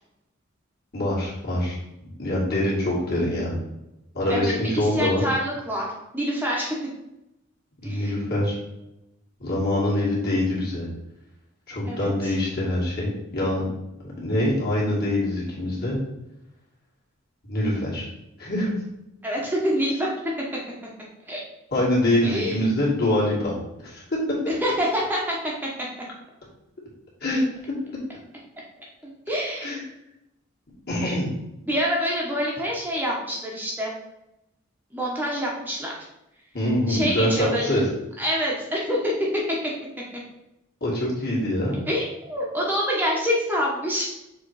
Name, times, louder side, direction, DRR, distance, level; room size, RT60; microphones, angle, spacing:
voice 1, 0.9-1.8 2.2-3.6 4.1-5.2 7.8-8.6 9.4-10.9 11.7-13.7 14.0-16.0 17.5-18.1 18.4-18.7 21.7-23.5 23.8-24.0 27.2-27.4 29.6-29.8 30.9-31.3 36.5-37.8 40.8-41.8, left 1 dB, 50° left, -5 dB, 2.3 m, -24 dB
voice 2, 4.3-5.9 6.1-6.8 7.8-8.1 11.9-12.3 19.2-20.1 21.3-21.4 22.2-22.6 24.5-25.4 25.6-25.7 29.0-29.7 31.7-33.9 34.9-35.9 36.9-37.8 38.2-39.6 41.9-44.0, equal, 10° right, -3 dB, 0.9 m, -26 dB
6.7 x 3.1 x 4.7 m, 0.90 s
head